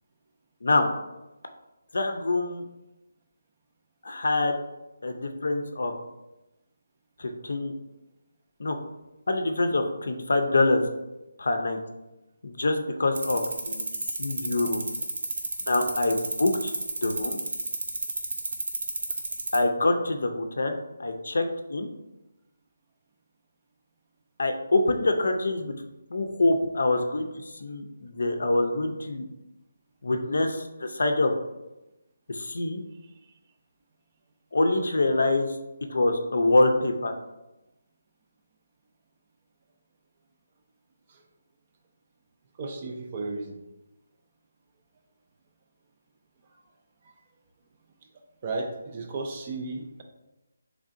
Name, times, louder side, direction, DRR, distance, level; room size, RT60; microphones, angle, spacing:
voice 1, 1.9-2.6 4.0-4.6 5.0-5.9 7.2-7.7 8.6-8.8 9.3-10.8 11.4-11.8 12.4-13.8 14.2-14.8 15.7-16.7 17.0-17.4 19.5-21.9 24.4-25.7 26.1-29.3 30.0-31.3 32.3-32.8 34.5-35.5 35.9-37.1, left 2 dB, 65° left, 5 dB, 0.5 m, -25 dB
sound 1, 13.1-19.6, right 3 dB, 55° right, 0.7 m, -30 dB
voice 2, 42.6-43.6 48.4-50.0, right 3 dB, 20° right, 4 dB, 0.3 m, -34 dB
3.7 x 3.2 x 2.5 m, 0.99 s
hypercardioid pair, 175°, 0 cm